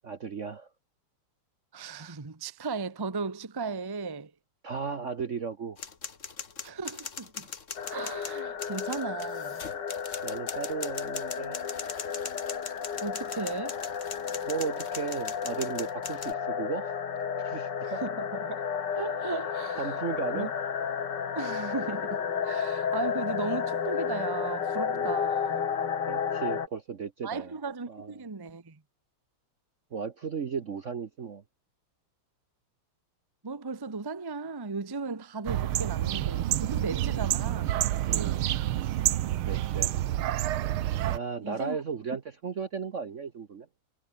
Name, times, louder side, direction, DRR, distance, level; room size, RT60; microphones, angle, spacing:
voice 1, 0.0-0.7 4.6-5.8 10.2-11.9 14.5-17.0 17.4-18.0 19.8-20.5 24.9-25.2 26.1-27.5 27.9-28.1 29.9-31.4 38.1-38.5 39.5-39.9 41.1-43.7, right 5 dB, 45° right, 1.1 m, -35 dB
voice 2, 1.7-4.3 6.6-7.5 7.9-9.6 13.0-13.8 17.8-18.6 18.9-19.9 20.3-20.5 21.3-25.6 27.2-28.8 33.4-37.8 41.4-41.8, right 4 dB, 15° right, 0.8 m, -36 dB
sound 1, 5.8-16.3, left 5 dB, 35° left, 2.0 m, -41 dB
sound 2, 7.7-26.7, left 7 dB, 55° left, 2.3 m, -32 dB
sound 3, 35.5-41.2, right 13 dB, 85° right, 1.8 m, -28 dB
omnidirectional pair, 2.3 m